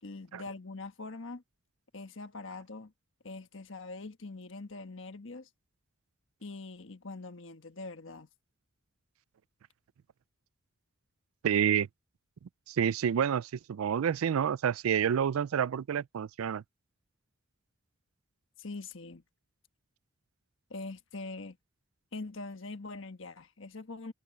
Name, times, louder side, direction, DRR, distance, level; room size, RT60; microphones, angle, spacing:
voice 1, 0.0-1.4 1.9-2.9 3.2-5.5 6.4-8.3 18.6-19.2 20.7-21.6 22.1-24.1, left 3 dB, 65° left, 1.3 m, -43 dB
voice 2, 11.4-11.9 12.7-16.6, right 8 dB, 85° right, 0.4 m, -28 dB
head